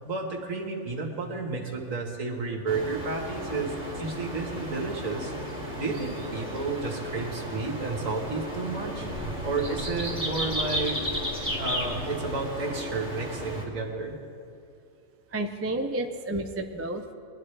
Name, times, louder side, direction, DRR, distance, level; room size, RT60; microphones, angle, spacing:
voice 1, 0.1-5.3 5.8-9.1 9.4-11.0 11.6-14.2, right 3 dB, 65° right, 0 dB, 2.0 m, -31 dB
sound 1, 2.7-13.6, equal, 5° right, 2.1 m, -34 dB
voice 2, 15.3-17.1, right 1 dB, 20° right, 4 dB, 0.4 m, -31 dB
21.5 x 11.5 x 3.3 m, 2.6 s
omnidirectional pair, 1.5 m